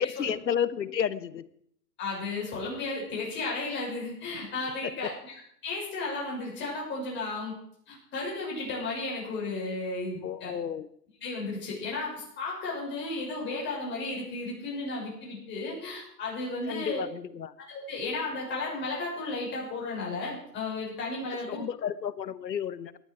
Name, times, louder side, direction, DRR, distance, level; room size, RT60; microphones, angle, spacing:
voice 1, 0.0-1.5 4.8-5.1 10.2-10.9 16.6-17.5 21.3-23.0, left 8 dB, 90° left, 17 dB, 1.1 m, -32 dB
voice 2, 2.0-5.1 5.6-7.6 7.9-10.5 11.2-17.0 17.7-21.6, left 3 dB, 20° left, -4 dB, 6.7 m, -34 dB
18.5 x 11.5 x 4.8 m, 0.68 s
hypercardioid pair, 140°, 49 cm